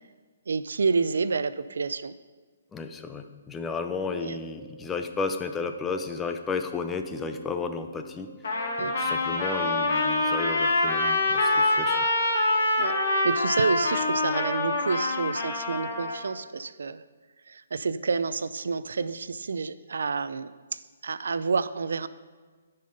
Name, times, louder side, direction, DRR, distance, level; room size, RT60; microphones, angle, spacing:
voice 1, 0.5-2.1 4.1-4.4 8.8-8.9 12.8-13.0 13.2-17.0 17.5-22.1, right 4 dB, 80° right, 15 dB, 0.4 m, -29 dB
voice 2, 2.7-8.3 8.8-12.0, left 4 dB, 5° left, 7 dB, 0.3 m, -33 dB
sound 1, 4.3-14.4, right 2 dB, 25° right, 2.9 m, -47 dB
Trumpet, 8.4-16.2, left 2 dB, 55° left, 1.7 m, -25 dB
10.5 x 5.5 x 5.1 m, 1.4 s
hypercardioid pair, 175°, 0 cm